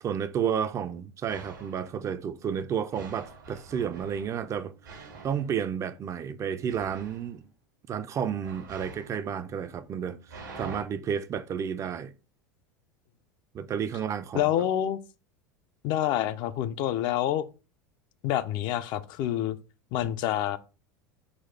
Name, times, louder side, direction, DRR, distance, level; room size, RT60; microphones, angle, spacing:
voice 1, 0.0-7.4 7.9-12.1 13.5-14.4, right 8 dB, 30° right, 0.4 m, -31 dB
sound 1, 1.3-1.9 2.9-6.2 6.7-7.4 8.4-10.8, right 4 dB, 85° right, 1.2 m, -47 dB
voice 2, 14.3-15.0 15.8-17.5 18.2-19.6 19.9-20.6, left 12 dB, 50° left, 0.4 m, -27 dB
4.1 x 2.3 x 4.4 m
hypercardioid pair, 85°, 10 cm